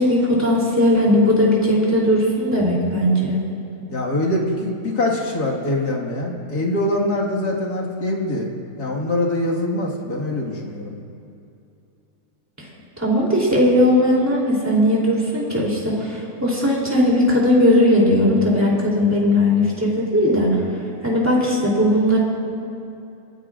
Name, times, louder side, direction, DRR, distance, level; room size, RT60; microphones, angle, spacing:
voice 1, 0.0-3.4 13.0-20.6 21.0-22.2, left 1 dB, 10° right, -5 dB, 3.2 m, -18 dB
voice 2, 3.9-8.5 8.8-10.9, left 1 dB, 75° left, -2 dB, 2.4 m, -23 dB
29.5 x 13.5 x 2.5 m, 2.7 s
omnidirectional pair, 1.7 m